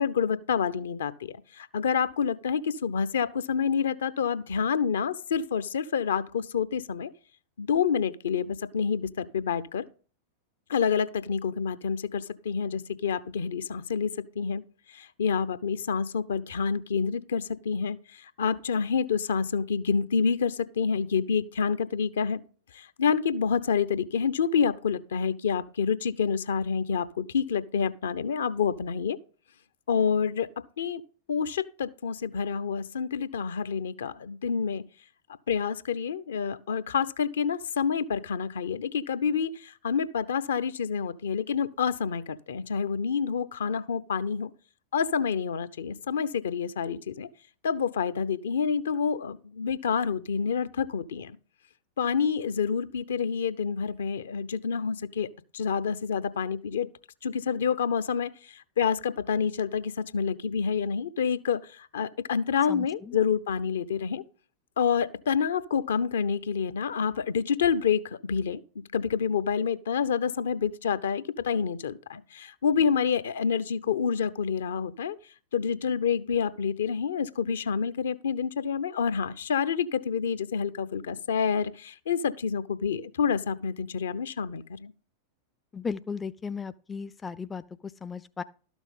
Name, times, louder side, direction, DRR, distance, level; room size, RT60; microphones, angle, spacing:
voice 1, 0.0-7.1 7.6-9.9 10.7-14.1 14.4-14.6 14.9-22.4 22.7-29.2 29.9-30.5 30.8-31.0 31.3-34.8 35.5-44.5 44.9-47.3 47.6-51.4 52.0-55.3 55.5-56.9 57.2-64.2 64.8-68.6 68.9-75.2 75.5-84.9, left 6 dB, 65° left, 0.7 m, -28 dB
voice 2, 62.7-63.2 85.7-88.4, left 5 dB, 15° left, 0.4 m, -36 dB
12.5 x 6.2 x 5.4 m
figure-of-eight pair, 90°, 0 cm